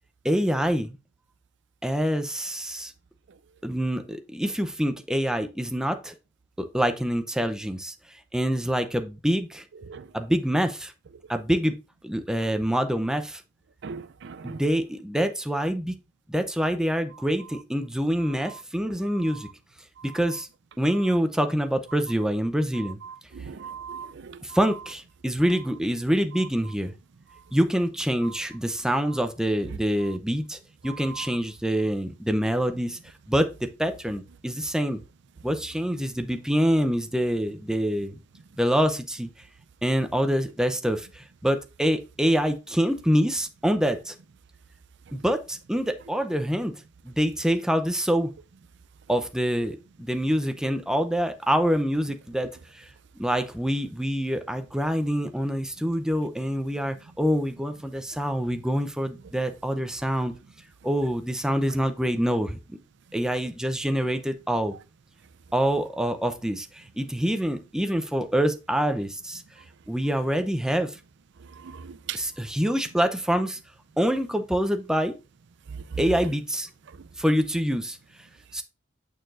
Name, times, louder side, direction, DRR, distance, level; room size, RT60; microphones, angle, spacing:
voice 1, 0.2-1.0 1.8-2.9 3.6-6.1 6.6-7.9 8.3-9.6 10.1-10.9 11.3-11.8 12.0-13.4 14.4-16.0 16.3-19.5 20.0-20.5 20.8-23.0 24.4-26.9 27.5-30.6 30.8-33.0 33.3-35.0 35.4-38.2 38.6-39.3 39.8-44.1 45.1-46.7 47.0-48.3 49.1-52.5 52.8-52.9 53.2-60.3 60.8-62.8 63.1-64.8 65.5-69.4 69.9-70.9 72.1-73.6 74.0-75.2 76.0-76.7 77.2-78.0 78.5-78.6, equal, 5° right, 0.6 m, -26 dB
voice 2, 13.8-14.6 23.3-24.4 31.1-31.3 71.6-72.2, right 6 dB, 60° right, 0.5 m, -38 dB
6.6 x 6.5 x 2.5 m
head